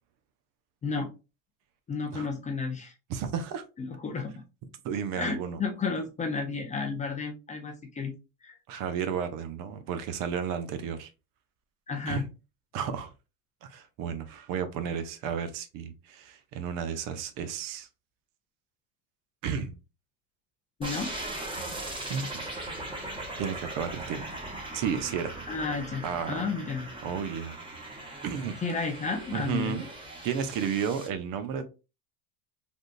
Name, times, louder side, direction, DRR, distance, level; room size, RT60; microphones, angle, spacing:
voice 1, 1.9-2.9 3.8-4.3 5.2-8.1 8.4-8.6 11.9-12.3 20.8-21.1 25.5-26.9 28.6-29.8, left 4 dB, 20° left, 0.4 m, -32 dB
voice 2, 3.1-3.6 4.8-5.6 8.7-11.1 12.1-12.2 12.7-13.1 13.6-17.9 19.4-19.8 22.1-22.3 23.4-24.2 24.7-25.4 26.0-26.4 27.0-27.6 28.2-28.6 29.3-29.9 30.2-31.6, right 7 dB, 55° right, 0.7 m, -32 dB
sound 1, 20.8-31.1, right 2 dB, 10° right, 1.0 m, -39 dB
3.5 x 2.5 x 2.5 m
supercardioid pair, 130°, 40 cm